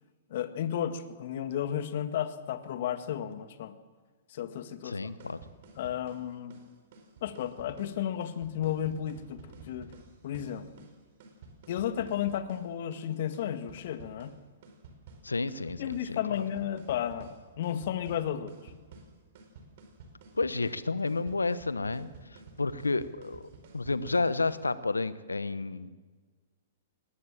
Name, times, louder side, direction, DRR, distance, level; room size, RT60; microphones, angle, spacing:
voice 1, 0.3-3.8 4.3-5.1 5.8-6.5 7.2-9.9 10.2-10.8 11.7-14.3 15.8-18.5, left 10 dB, 55° left, 10 dB, 1.7 m, -33 dB
voice 2, 4.8-5.4 15.2-16.4 20.3-22.1 22.6-23.4 23.7-25.9, left 3 dB, 85° left, 15 dB, 1.1 m, -31 dB
sound 1, 5.0-24.7, right 3 dB, 55° right, 4.5 m, -52 dB
20.0 x 19.5 x 7.5 m, 1.4 s
figure-of-eight pair, 115°, 0 cm